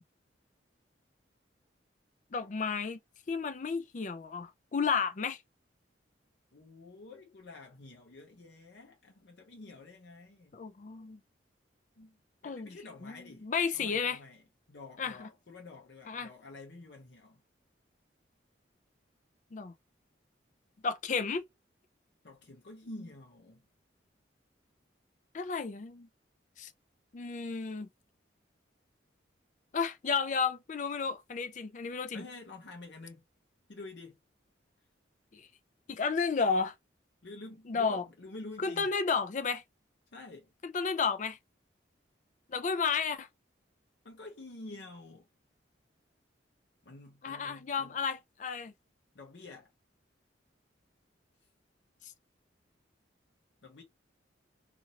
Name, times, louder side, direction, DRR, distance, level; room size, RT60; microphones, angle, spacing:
voice 1, 2.3-3.0 3.3-5.4 10.5-11.2 12.4-12.7 13.0-14.2 15.0-15.3 16.1-16.3 19.5-19.7 20.8-21.4 25.3-26.1 26.6-26.7 27.1-27.9 29.7-32.2 35.3-35.5 35.9-36.7 37.7-38.0 38.6-39.6 40.6-41.4 42.5-43.3 47.2-48.7, left 5 dB, 40° left, 0.4 m, -32 dB
voice 2, 6.5-10.6 12.0-13.5 13.7-14.4 14.7-17.4 22.2-23.6 32.1-33.2 33.7-34.2 37.2-38.9 40.1-40.5 44.0-45.3 46.8-48.0 49.1-49.7 53.6-53.8, left 2 dB, 65° left, 0.7 m, -49 dB
2.7 x 2.6 x 2.8 m
head